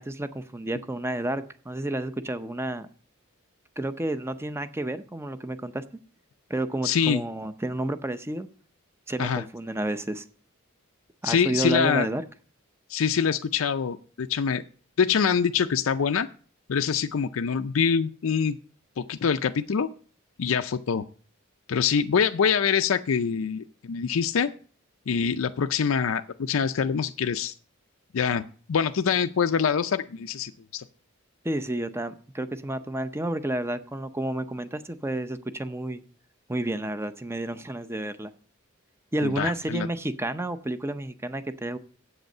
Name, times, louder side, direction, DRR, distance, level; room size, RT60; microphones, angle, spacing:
voice 1, 0.0-2.9 3.8-5.8 6.5-8.5 9.1-10.2 11.2-12.2 31.4-36.0 36.5-38.3 39.1-41.8, right 1 dB, 10° right, 12 dB, 0.6 m, -30 dB
voice 2, 6.8-7.2 9.2-9.4 11.2-12.1 12.9-14.6 15.0-16.3 16.7-18.6 19.0-19.9 20.4-21.0 21.7-24.5 25.1-27.5 28.1-28.4 28.7-30.8 39.2-39.9, left 6 dB, 75° left, 8 dB, 0.5 m, -25 dB
8.0 x 7.9 x 6.6 m, 0.42 s
head